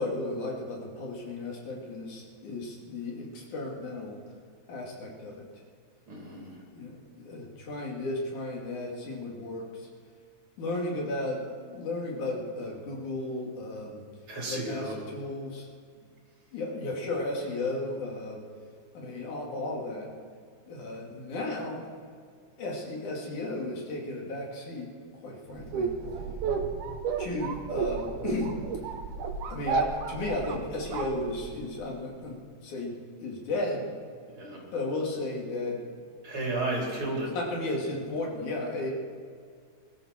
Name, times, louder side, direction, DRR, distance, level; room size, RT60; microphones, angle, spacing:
voice 1, 0.0-4.2 4.7-5.5 6.8-9.9 10.6-14.0 14.5-15.7 16.5-18.4 18.9-20.1 20.7-21.8 22.6-24.9 25.2-25.9 27.2-28.5 29.5-33.9 34.7-35.8 37.3-38.9, left 2 dB, 75° left, -1 dB, 4.0 m, -34 dB
voice 2, 6.1-6.6 14.3-15.0 34.4-34.7 36.2-37.3, right 2 dB, 40° right, -3 dB, 4.9 m, -33 dB
sound 1, 25.5-31.8, right 5 dB, 80° right, 2.5 m, -32 dB
21.0 x 13.0 x 4.4 m, 2.1 s
omnidirectional pair, 3.5 m